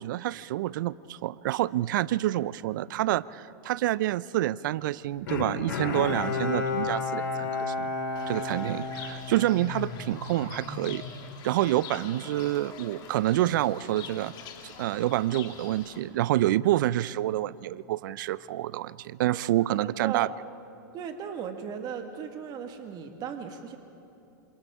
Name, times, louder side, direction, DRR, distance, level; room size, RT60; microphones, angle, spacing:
voice 1, 0.0-7.9 8.3-11.0 11.4-14.3 14.6-20.3, right 14 dB, 65° right, 19 dB, 0.5 m, -28 dB
Bowed string instrument, 5.3-9.8 10.2-10.3, left 4 dB, 75° left, 3.6 m, -31 dB
Fowl / Bird, 8.2-16.0, left 6 dB, 40° left, 2.6 m, -43 dB
voice 2, 19.8-20.3 20.9-23.8, right 7 dB, 35° right, 5 dB, 1.7 m, -37 dB
27.5 x 27.0 x 3.7 m, 2.7 s
hypercardioid pair, 110°, 11 cm